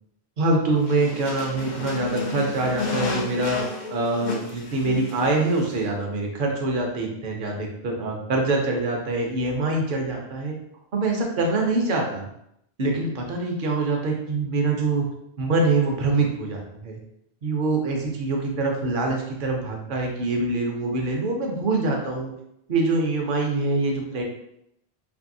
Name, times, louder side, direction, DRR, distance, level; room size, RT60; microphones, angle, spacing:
voice 1, 0.4-3.6 3.9-10.5 10.9-12.3 12.8-15.1 15.4-17.0 17.4-22.3 22.7-24.3, right 2 dB, 60° right, 1 dB, 0.7 m, -24 dB
sound 1, 0.8-5.9, left 3 dB, 55° left, 0.6 m, -32 dB
2.7 x 2.6 x 2.6 m, 0.78 s
omnidirectional pair, 1.1 m